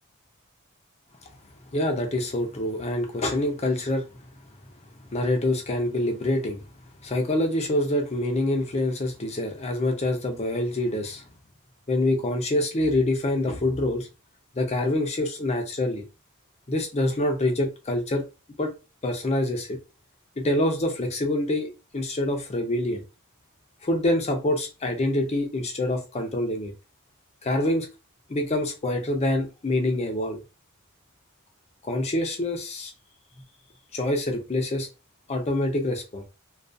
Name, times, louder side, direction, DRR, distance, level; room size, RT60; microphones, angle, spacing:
voice 1, 1.7-4.0 5.1-6.6 7.0-11.2 11.9-14.1 14.5-16.0 16.7-18.2 18.6-18.7 19.0-19.8 20.4-23.0 23.8-26.7 27.4-27.9 28.3-30.4 31.8-32.9 33.9-34.9 35.3-36.2, left 1 dB, 30° left, 0.5 m, -26 dB
2.3 x 2.3 x 2.6 m
head